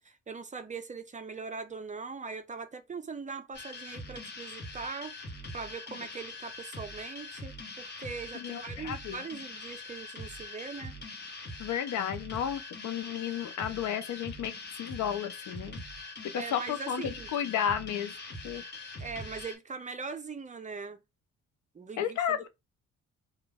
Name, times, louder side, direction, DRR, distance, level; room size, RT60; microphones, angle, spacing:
voice 1, 0.0-5.1 5.5-11.0 16.3-17.3 19.0-21.0 21.7-22.5, right 5 dB, 25° right, 0.5 m, -41 dB
sound 1, 3.5-19.6, left 2 dB, 35° left, 1.2 m, -43 dB
voice 2, 8.3-9.2 11.6-15.8 16.2-18.1 18.4-18.6 22.0-22.5, left 9 dB, 70° left, 0.7 m, -33 dB
3.0 x 2.4 x 3.4 m
cardioid pair, 90°, 30 cm